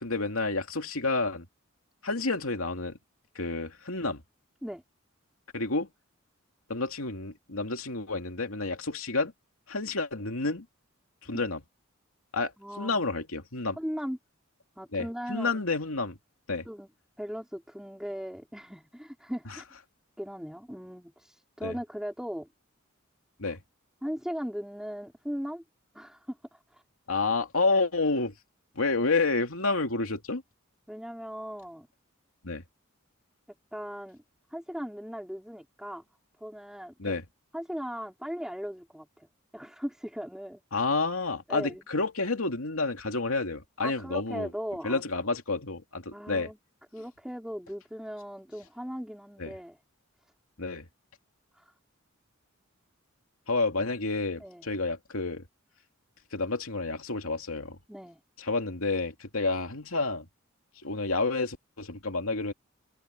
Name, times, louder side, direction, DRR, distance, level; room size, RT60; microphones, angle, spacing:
voice 1, 0.0-1.5 2.0-3.0 3.3-4.2 5.5-5.9 6.7-9.3 9.7-10.6 11.2-11.6 12.3-12.5 12.8-13.8 14.9-16.2 16.5-16.6 21.6-21.7 23.4-23.6 27.1-28.3 28.8-30.4 32.4-32.6 37.0-37.2 40.7-44.5 44.8-46.5 49.4-49.5 50.6-50.9 53.5-55.4 56.3-57.8 58.4-60.3 60.8-62.5, left 3 dB, 90° left, 2.7 m, -29 dB
voice 2, 12.6-12.9 13.8-14.2 14.8-15.6 16.7-16.9 17.2-19.6 20.2-22.5 23.4-23.6 24.0-25.6 25.9-26.8 30.9-31.9 33.7-34.2 34.5-36.0 36.4-37.2 37.5-39.3 39.5-40.6 41.5-41.8 43.8-45.0 46.1-46.6 46.9-49.8 51.5-51.7 54.4-54.7 57.9-58.2, equal, 5° right, 3.6 m, -38 dB
head